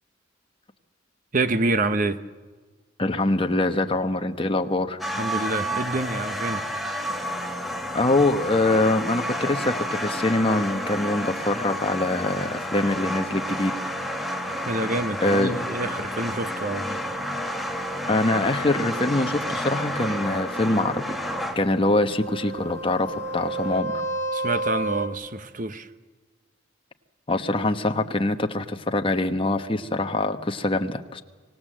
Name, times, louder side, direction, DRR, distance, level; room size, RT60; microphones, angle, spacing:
voice 1, 1.3-2.2 5.2-6.6 14.7-17.0 24.3-25.9, right 2 dB, 45° right, 1.0 m, -27 dB
voice 2, 3.0-5.0 7.9-13.7 15.2-15.6 18.1-24.0 27.3-31.2, left 2 dB, 30° left, 1.1 m, -24 dB
sound 1, 5.0-23.8, equal, ahead, 1.5 m, -31 dB
sound 2, 16.4-25.1, right 2 dB, 75° right, 2.4 m, -34 dB
25.0 x 18.0 x 7.6 m
head